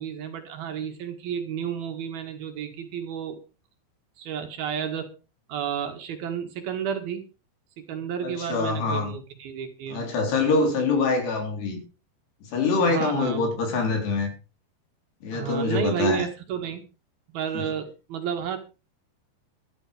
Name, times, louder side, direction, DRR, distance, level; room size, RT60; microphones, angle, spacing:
voice 1, 0.0-3.4 4.2-5.1 5.5-7.2 7.8-10.1 12.8-13.5 15.3-16.8 17.3-18.6, right 8 dB, 65° right, 6 dB, 3.5 m, -31 dB
voice 2, 8.2-9.1 9.9-11.8 12.5-14.3 15.2-16.3 17.6-17.7, left 3 dB, 70° left, 4 dB, 5.7 m, -25 dB
13.0 x 12.5 x 5.1 m, 0.33 s
omnidirectional pair, 5.0 m